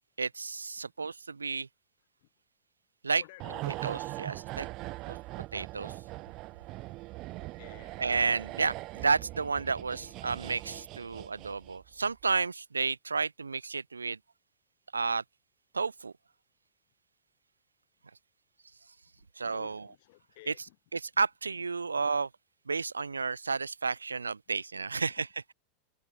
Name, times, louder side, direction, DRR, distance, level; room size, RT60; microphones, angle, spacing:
voice 1, 0.2-1.7 3.0-3.2 3.6-4.7 5.1-5.2 5.5-5.9 8.0-14.2 14.9-15.2 15.7-16.1 19.4-19.9 20.5-20.7 20.9-22.3 22.7-25.5, right 4 dB, 85° right, 0.8 m, -31 dB
voice 2, 3.2-3.9 7.4-8.0 19.5-20.8 24.9-25.1, left 21 dB, 60° left, 2.9 m, -53 dB
sound 1, 3.4-11.9 12.2-12.4, right 20 dB, 45° right, 1.8 m, -41 dB
figure-of-eight pair, 85°, 0 cm